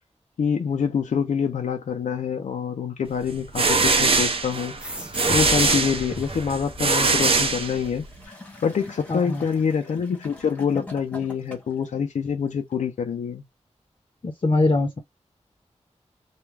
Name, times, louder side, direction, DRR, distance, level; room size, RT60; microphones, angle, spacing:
voice 1, 0.4-4.7 5.3-8.3 8.6-13.4, left 6 dB, 80° left, 0.5 m, -26 dB
sound 1, 3.3-8.2, right 4 dB, 50° right, 0.6 m, -22 dB
sound 2, 4.8-7.8, right 1 dB, 10° right, 0.6 m, -37 dB
Gurgling / Toilet flush, 7.1-11.9 12.7-12.8, left 2 dB, 10° left, 0.9 m, -44 dB
voice 2, 9.1-9.4 14.2-15.0, left 2 dB, 40° left, 0.7 m, -22 dB
2.4 x 2.2 x 3.2 m
wide cardioid pair, 95°, 12 cm